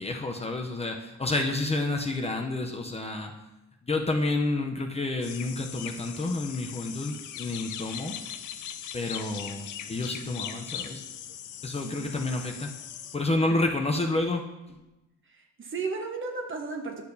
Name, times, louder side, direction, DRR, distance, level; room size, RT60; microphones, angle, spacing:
voice 1, 0.0-3.3 3.8-8.2 8.9-11.0 11.6-12.7 13.1-14.4 14.7-14.8, left 2 dB, 20° left, 2 dB, 0.7 m, -29 dB
sound 1, 5.2-13.2, left 9 dB, 75° left, 0.7 m, -40 dB
voice 2, 15.3-17.1, right 4 dB, 40° right, 3 dB, 1.2 m, -35 dB
10.0 x 6.4 x 2.8 m, 0.99 s
cardioid pair, 90°, 30 cm